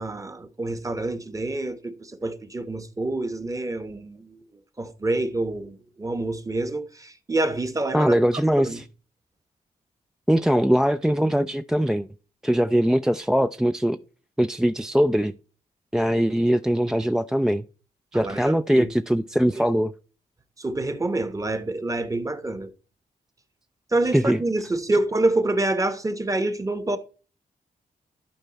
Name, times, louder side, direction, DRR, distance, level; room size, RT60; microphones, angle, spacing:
voice 1, 0.0-4.4 4.8-8.1 8.5-8.8 18.1-18.9 20.6-22.7 23.9-27.0, right 2 dB, 20° right, 1.0 m, -27 dB
voice 2, 7.9-8.8 10.3-12.1 12.4-14.0 14.4-15.3 15.9-17.6 18.1-19.9 24.1-24.4, equal, 5° right, 0.3 m, -21 dB
11.5 x 4.6 x 4.0 m
cardioid pair, 80°, 15 cm